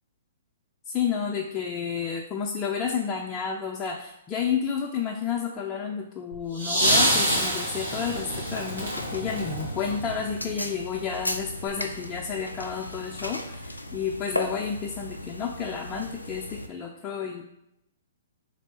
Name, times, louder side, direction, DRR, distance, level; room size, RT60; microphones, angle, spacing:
voice 1, 0.9-17.4, left 6 dB, 25° left, 0 dB, 0.4 m, -31 dB
sound 1, 6.3-10.5 11.7-11.8, equal, 90° right, 1.5 m, -26 dB
sound 2, 8.0-16.7, left 1 dB, 90° left, 0.4 m, -36 dB
3.3 x 3.0 x 4.2 m, 0.83 s
figure-of-eight pair, 115°, 0 cm